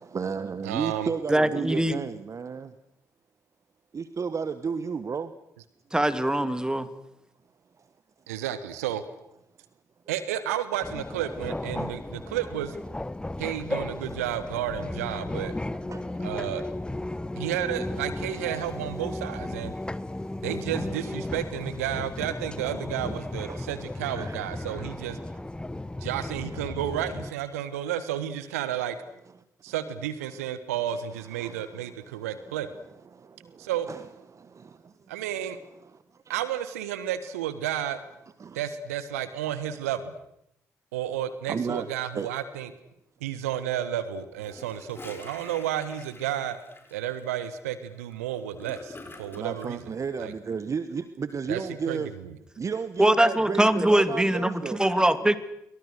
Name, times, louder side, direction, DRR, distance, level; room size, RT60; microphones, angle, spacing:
voice 1, 0.1-2.7 3.9-5.3 7.8-7.9 15.9-16.3 17.1-17.4 19.7-20.4 23.5-23.7 24.0-24.4 24.7-24.9 26.5-26.8 31.1-32.3 33.1-34.9 35.8-36.3 38.4-38.6 41.5-41.9 42.1-42.3 49.4-52.1 52.6-54.8, right 5 dB, 40° right, 13 dB, 1.3 m, -34 dB
voice 2, 0.6-1.1 8.3-9.0 10.1-12.8 13.4-15.5 16.2-16.6 17.4-19.7 20.4-25.2 26.0-29.0 29.6-32.7 33.6-33.9 35.1-35.6 36.3-38.0 38.5-40.1 40.9-42.7 43.2-46.6 46.9-49.8 50.2-50.3 51.5-52.3, right 11 dB, 80° right, 14 dB, 1.3 m, -32 dB
voice 3, 1.3-2.0 5.9-6.9 53.0-55.4, right 1 dB, 10° right, 12 dB, 2.4 m, -22 dB
sound 1, 10.8-27.3, left 1 dB, 10° left, 1.1 m, -35 dB
Gurgling / Toilet flush, 44.3-49.7, left 2 dB, 30° left, 6.6 m, -47 dB
29.0 x 23.0 x 6.6 m, 0.80 s
figure-of-eight pair, 40°, 8 cm